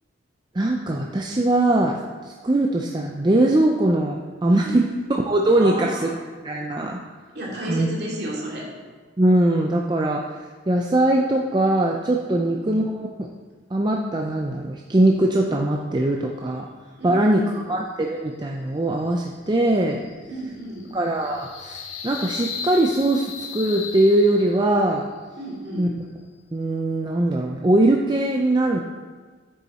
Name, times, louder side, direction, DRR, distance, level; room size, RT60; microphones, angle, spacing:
voice 1, 0.5-6.1 6.4-7.0 7.7-7.9 9.2-10.4 10.7-13.3 13.7-16.7 17.0-20.0 20.9-25.1 25.8-25.9 26.5-28.8, right 1 dB, 20° right, 0 dB, 0.4 m, -21 dB
voice 2, 5.6-6.1 7.3-8.7 12.3-12.7 17.0-17.7 20.3-20.9 25.4-25.9, right 1 dB, 55° right, -4 dB, 2.5 m, -32 dB
sound 1, 18.9-24.9, left 5 dB, 80° left, 1.1 m, -37 dB
8.4 x 7.0 x 4.2 m, 1.4 s
head